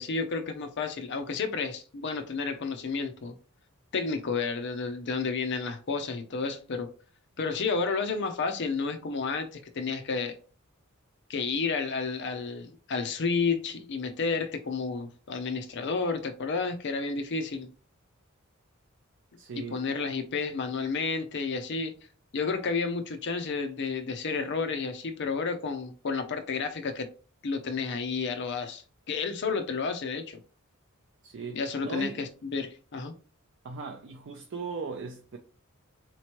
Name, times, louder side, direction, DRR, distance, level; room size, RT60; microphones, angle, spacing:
voice 1, 0.0-3.4 3.9-6.9 7.4-10.3 11.3-17.7 19.7-21.9 22.3-27.1 27.4-30.4 31.5-33.1, left 4 dB, 50° left, 0.5 m, -31 dB
voice 2, 19.4-19.9 31.2-32.2 33.6-35.4, right 5 dB, 55° right, 0.5 m, -38 dB
4.2 x 3.1 x 2.9 m
head